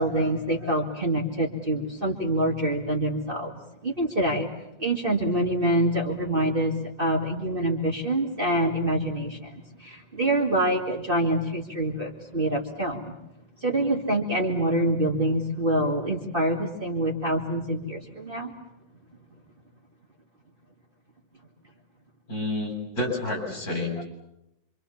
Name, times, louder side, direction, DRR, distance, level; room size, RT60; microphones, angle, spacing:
voice 1, 0.0-4.5 4.8-13.2 13.6-18.5 24.0-24.1, right 1 dB, 30° right, 1 dB, 2.4 m, -26 dB
voice 2, 22.3-24.0, left 2 dB, 50° left, 1 dB, 8.2 m, -29 dB
26.5 x 26.0 x 7.2 m, 0.86 s
omnidirectional pair, 2.0 m